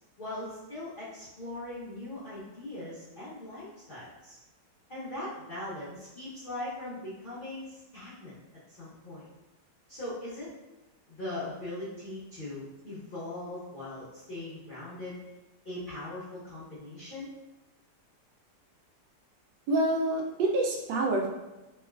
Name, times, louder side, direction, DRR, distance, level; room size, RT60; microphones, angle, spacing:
voice 1, 0.2-4.4 4.9-8.4 8.7-9.3 9.9-10.5 11.1-15.2 15.6-17.3, left 1 dB, 45° left, -12 dB, 0.7 m, -40 dB
voice 2, 19.7-21.3, right 2 dB, 85° right, 0 dB, 1.3 m, -27 dB
3.3 x 2.3 x 2.3 m, 1.0 s
omnidirectional pair, 1.9 m